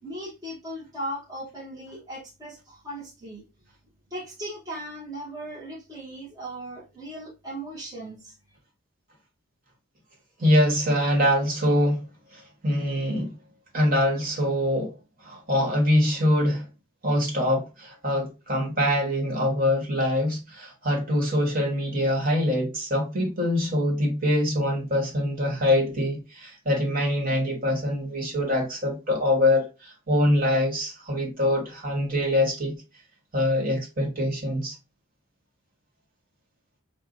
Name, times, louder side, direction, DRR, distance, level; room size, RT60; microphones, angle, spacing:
voice 1, 0.0-3.4 4.1-8.4, right 1 dB, 15° right, 1.0 m, -37 dB
voice 2, 10.4-12.0 12.3-13.3 13.7-14.9 15.2-16.6 17.0-32.7 33.3-34.8, left 1 dB, 40° right, 1.5 m, -24 dB
5.6 x 2.3 x 2.6 m
head